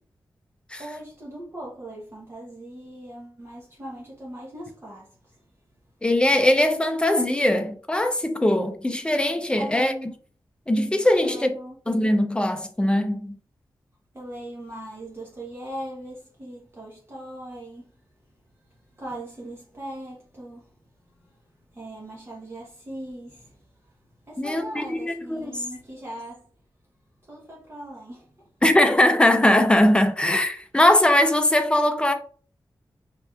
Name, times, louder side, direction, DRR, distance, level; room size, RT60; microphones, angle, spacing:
voice 1, 0.8-5.4 9.5-10.1 11.2-11.8 14.1-17.9 19.0-20.7 21.1-21.2 21.7-23.6 24.3-26.5 27.3-28.3, right 1 dB, 30° right, 0.8 m, -39 dB
voice 2, 6.0-9.9 10.7-11.6 11.9-13.4 24.4-25.6 28.6-32.1, left 1 dB, 10° left, 0.4 m, -21 dB
3.2 x 2.9 x 2.3 m
wide cardioid pair, 105°, 8 cm